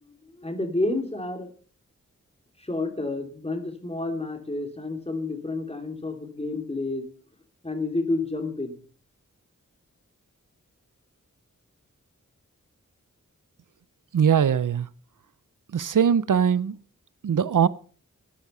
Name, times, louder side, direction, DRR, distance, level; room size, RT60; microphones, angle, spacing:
voice 1, 0.0-1.5 2.6-7.1 7.6-8.8, left 2 dB, 20° left, 3.0 m, -30 dB
voice 2, 14.1-14.9 15.7-16.8 17.2-17.7, right 8 dB, 80° right, 0.7 m, -21 dB
13.0 x 10.5 x 5.6 m
wide cardioid pair, 70°, 31 cm